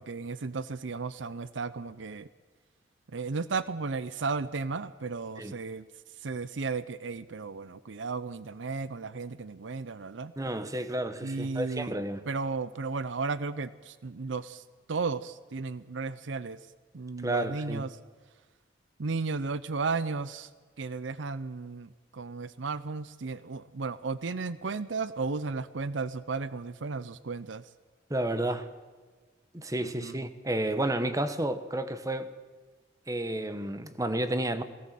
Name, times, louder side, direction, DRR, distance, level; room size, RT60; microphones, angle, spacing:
voice 1, 0.0-2.3 3.1-5.8 6.2-10.3 11.2-11.9 12.3-14.6 14.9-16.6 16.9-17.9 19.0-20.5 20.8-27.6 29.8-30.2, right 4 dB, 90° right, 15 dB, 0.7 m, -34 dB
voice 2, 10.4-12.3 17.2-17.8 28.1-28.7 29.5-32.3 33.1-34.6, right 1 dB, 20° right, 10 dB, 1.2 m, -31 dB
21.5 x 17.5 x 7.6 m, 1.4 s
head